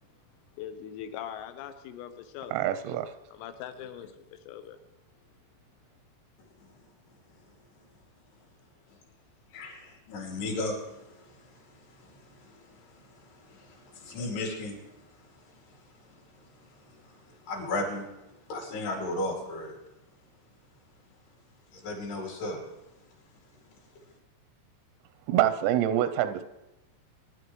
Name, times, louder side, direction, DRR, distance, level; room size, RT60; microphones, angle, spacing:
voice 1, 0.6-2.5 3.3-4.8, left 10 dB, 85° left, 9 dB, 3.6 m, -41 dB
voice 2, 2.5-3.1 25.3-26.4, right 12 dB, 90° right, 9 dB, 3.5 m, -26 dB
voice 3, 9.5-19.8 21.7-22.6, left 2 dB, 60° left, -1 dB, 4.2 m, -37 dB
23.5 x 10.5 x 3.1 m, 0.95 s
omnidirectional pair, 5.9 m